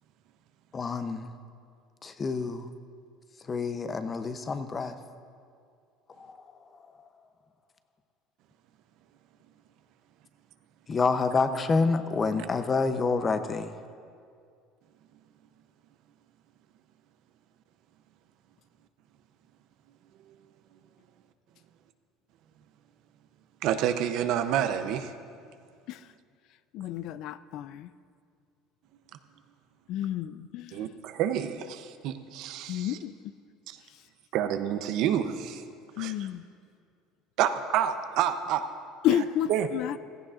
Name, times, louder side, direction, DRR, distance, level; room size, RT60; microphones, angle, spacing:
voice 1, 0.7-1.3 2.0-2.7 3.5-4.9 6.2-6.3 10.9-13.7, left 4 dB, 25° left, 10 dB, 0.7 m, -28 dB
voice 2, 23.6-25.1 30.7-33.0 33.7-33.8 34.3-35.6 36.0-36.1 37.4-38.6 39.5-39.7, right 10 dB, 65° right, 10 dB, 0.6 m, -28 dB
voice 3, 26.7-27.9 29.9-30.9 32.7-33.1 33.9-34.0 36.0-36.4 39.0-40.0, left 11 dB, 60° left, 15 dB, 0.3 m, -31 dB
16.0 x 14.0 x 2.5 m, 2.3 s
supercardioid pair, 120°, 0 cm